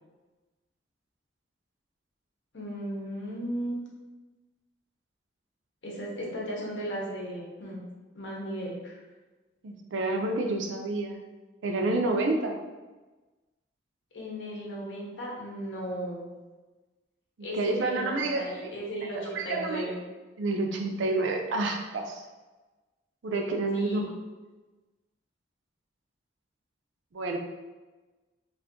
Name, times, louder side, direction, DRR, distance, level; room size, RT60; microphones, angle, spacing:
voice 1, 2.5-3.8 5.8-7.8 8.1-9.0 14.1-16.3 17.4-20.0 23.7-24.1, equal, 80° left, -3 dB, 0.8 m, -36 dB
voice 2, 9.6-11.2 11.6-12.6 17.4-18.7 19.1-19.9 20.4-22.2 23.2-24.0 27.1-27.4, right 2 dB, 85° right, 3 dB, 0.4 m, -29 dB
2.5 x 2.4 x 3.6 m, 1.2 s
head